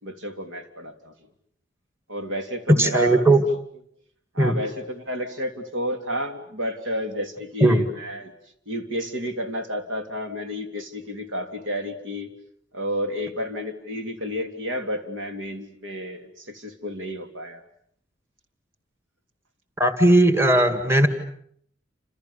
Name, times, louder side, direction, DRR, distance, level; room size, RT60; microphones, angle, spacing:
voice 1, 0.0-1.1 2.1-3.4 4.3-8.3 8.7-12.3 12.7-17.6, equal, 75° right, 6 dB, 3.2 m, -31 dB
voice 2, 2.7-3.4 4.4-4.5 7.6-7.8 19.8-21.1, right 1 dB, 15° right, 9 dB, 2.0 m, -17 dB
29.0 x 28.5 x 7.1 m, 0.66 s
head